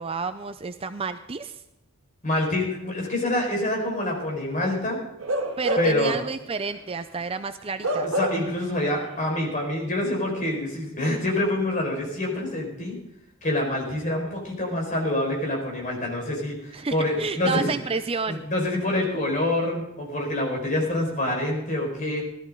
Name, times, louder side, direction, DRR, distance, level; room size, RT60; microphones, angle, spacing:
voice 1, 0.0-1.6 5.6-8.1 16.7-18.4, right 4 dB, 25° right, 10 dB, 0.5 m, -30 dB
voice 2, 2.2-5.0 5.8-6.1 8.0-13.0 13.4-17.7 18.3-22.2, left 1 dB, 35° left, -1 dB, 5.0 m, -26 dB
Bark / Livestock farm animals working animals, 5.2-6.1 6.5-6.7 7.8-8.6 9.0-9.1, right 1 dB, 65° right, 1.9 m, -27 dB
17.5 x 13.5 x 3.8 m, 0.87 s
head